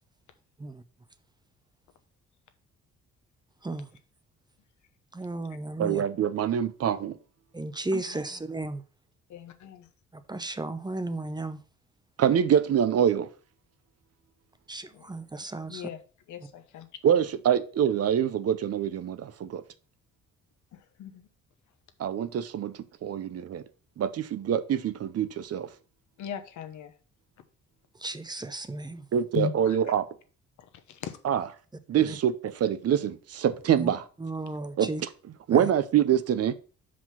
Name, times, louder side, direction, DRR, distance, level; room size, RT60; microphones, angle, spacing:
voice 1, 5.1-6.0 7.5-8.8 10.1-11.6 14.7-15.9 28.0-29.0 32.0-32.2 33.8-33.9 34.2-35.0 35.5-35.7, right 2 dB, 15° right, 0.7 m, -34 dB
voice 2, 5.8-7.1 12.2-13.3 17.0-19.6 22.0-23.6 24.0-25.7 29.1-30.1 31.2-31.5 31.9-34.0 34.8-34.9 35.5-36.5, right 9 dB, 55° right, 0.7 m, -25 dB
voice 3, 9.3-9.9 14.9-15.1 15.7-16.0 16.3-16.9 20.7-21.2 26.2-26.9 29.3-29.8 30.9-31.2, left 8 dB, 75° left, 1.1 m, -37 dB
5.7 x 5.0 x 5.6 m
cardioid pair, 90°, 30 cm